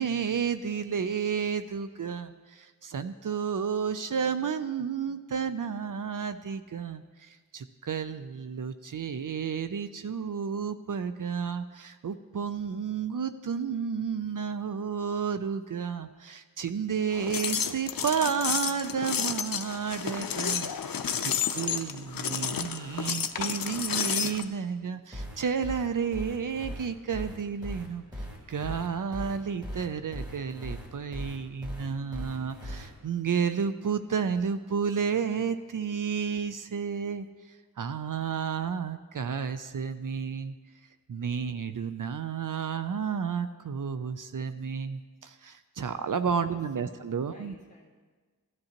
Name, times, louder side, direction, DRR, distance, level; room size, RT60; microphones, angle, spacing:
voice 1, 0.0-40.6 41.1-47.5, right 6 dB, 70° right, 10 dB, 0.5 m, -32 dB
sound 1, 17.1-24.4, left 7 dB, 80° left, 0.5 m, -31 dB
sound 2, 25.1-32.9, equal, 10° right, 3.5 m, -39 dB
voice 2, 46.4-47.9, left 2 dB, 20° left, -5 dB, 2.2 m, -53 dB
15.5 x 10.5 x 2.9 m, 1.4 s
wide cardioid pair, 45°, 34 cm